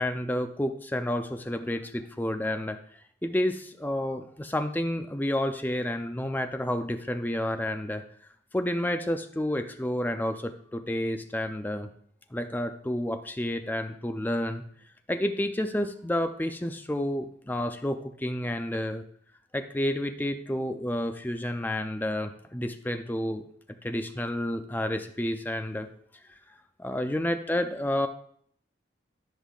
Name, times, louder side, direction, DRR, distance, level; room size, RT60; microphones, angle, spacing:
voice 1, 0.0-2.8 3.2-8.0 8.5-11.9 12.3-14.6 15.1-19.0 19.5-23.4 23.8-25.9 26.8-28.1, left 1 dB, 10° left, 7 dB, 0.5 m, -30 dB
13.5 x 5.5 x 2.4 m, 0.63 s
head